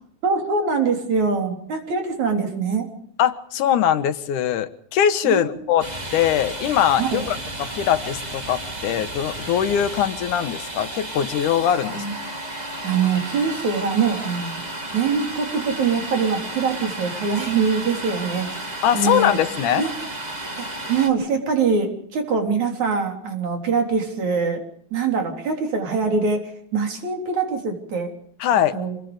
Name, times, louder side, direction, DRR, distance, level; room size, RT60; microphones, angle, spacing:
voice 1, 0.2-2.9 5.2-5.6 7.0-7.2 11.9-12.1 12.8-14.6 14.9-19.4 19.8-19.9 20.6-24.6 24.9-28.1 28.7-29.0, right 5 dB, 70° right, 3 dB, 5.0 m, -23 dB
voice 2, 3.2-5.9 6.1-12.0 18.8-19.9 28.4-28.8, left 9 dB, 90° left, 11 dB, 2.8 m, -21 dB
Domestic sounds home sounds, 5.8-21.1, right 1 dB, 15° right, 2.3 m, -33 dB
27.0 x 21.0 x 5.1 m, 0.65 s
omnidirectional pair, 3.5 m